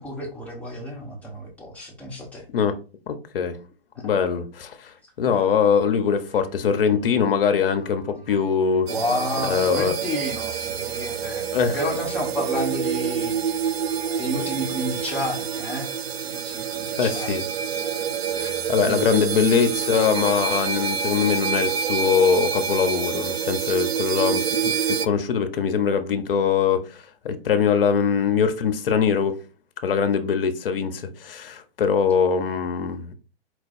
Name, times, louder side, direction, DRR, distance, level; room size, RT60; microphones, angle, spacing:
voice 1, 0.0-2.4 4.0-4.1 8.9-11.4 11.7-13.4 14.2-15.9 16.2-17.3 18.8-19.1, equal, 5° left, 1.1 m, -30 dB
voice 2, 3.1-3.6 4.0-8.9 9.4-9.9 11.5-11.8 17.0-17.4 18.4-29.3 29.8-33.1, left 6 dB, 65° left, 0.9 m, -22 dB
sound 1, 6.3-22.3, right 4 dB, 20° right, 1.9 m, -45 dB
sound 2, 8.9-25.1, right 7 dB, 80° right, 0.5 m, -27 dB
4.7 x 2.2 x 4.3 m
hypercardioid pair, 135°, 31 cm